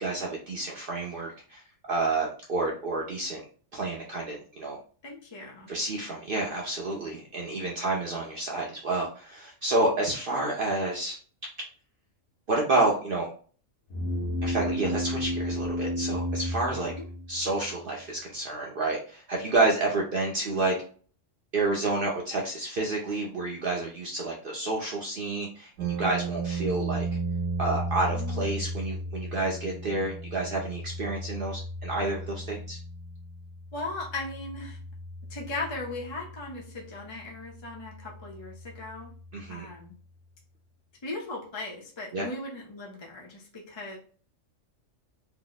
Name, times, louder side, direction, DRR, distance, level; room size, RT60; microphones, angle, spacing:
voice 1, 0.0-1.6 1.9-3.4 3.7-4.8 5.7-11.2 12.5-13.3 14.4-16.9 17.3-20.8 21.5-27.1 27.6-32.8 39.3-39.7 42.1-42.3, right 2 dB, 55° right, -2 dB, 0.6 m, -29 dB
voice 2, 5.0-5.7 16.8-17.1 28.1-28.6 33.7-34.8 35.3-39.1 39.5-39.9 41.0-44.0, left 2 dB, 35° left, -2 dB, 0.4 m, -38 dB
sound 1, 13.9-17.6, equal, 65° left, 1.0 m, -31 dB
sound 2, 25.8-39.8, right 2 dB, 85° right, 1.0 m, -36 dB
2.7 x 2.0 x 3.8 m, 0.42 s
omnidirectional pair, 1.3 m